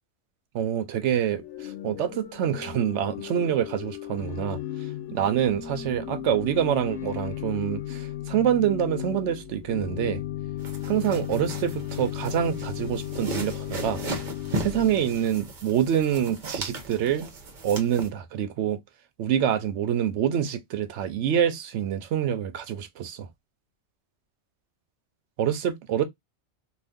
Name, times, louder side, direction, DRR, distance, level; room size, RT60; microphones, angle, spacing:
voice 1, 0.5-1.4 1.8-4.6 5.1-10.2 10.9-14.0 14.6-17.3 17.6-18.8 19.2-23.3 25.4-26.0, right 9 dB, 85° right, 0.9 m, -26 dB
Organ / Church bell, 1.3-15.5, left 12 dB, 80° left, 0.9 m, -35 dB
sound 1, 10.6-18.1, right 2 dB, 50° right, 0.8 m, -36 dB
2.6 x 2.5 x 3.5 m
omnidirectional pair, 1.2 m